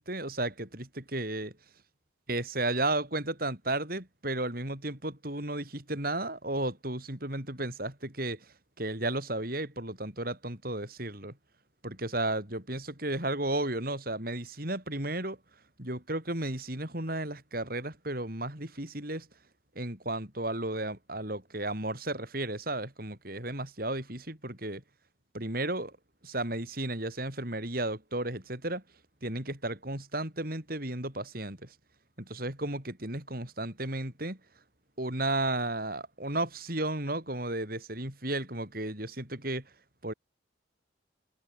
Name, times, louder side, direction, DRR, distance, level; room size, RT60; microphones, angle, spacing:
voice 1, 0.0-1.5 2.3-8.5 8.8-11.3 11.8-15.4 15.8-19.3 19.8-24.8 25.3-25.9 26.2-28.8 29.2-31.7 32.2-34.4 35.0-39.6 40.0-40.1, right 2 dB, 50° right, 5.8 m, -33 dB
head